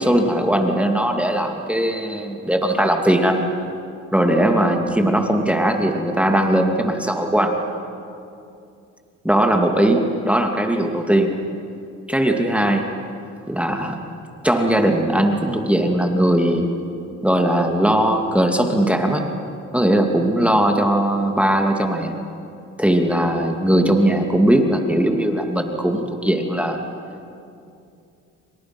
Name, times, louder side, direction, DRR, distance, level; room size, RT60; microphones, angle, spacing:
voice 1, 0.0-3.4 4.1-7.6 9.2-11.3 12.1-12.9 13.5-14.0 14.4-16.7 17.2-19.3 19.7-22.2 22.8-26.8, right 1 dB, 5° right, 3 dB, 2.4 m, -19 dB
29.5 x 25.0 x 6.0 m, 2.5 s
cardioid pair, 90°, 30 cm